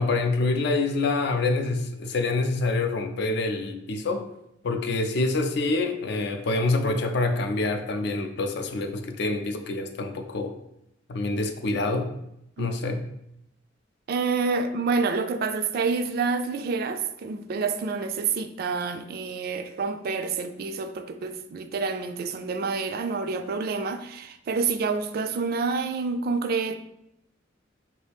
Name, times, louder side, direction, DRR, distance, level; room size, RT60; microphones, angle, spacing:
voice 1, 0.0-4.3 4.6-10.5 11.1-12.1 12.6-13.0, left 3 dB, 60° left, 0.4 m, -26 dB
voice 2, 12.6-13.0 14.1-26.8, right 4 dB, 55° right, 0.3 m, -28 dB
4.5 x 2.7 x 3.4 m
head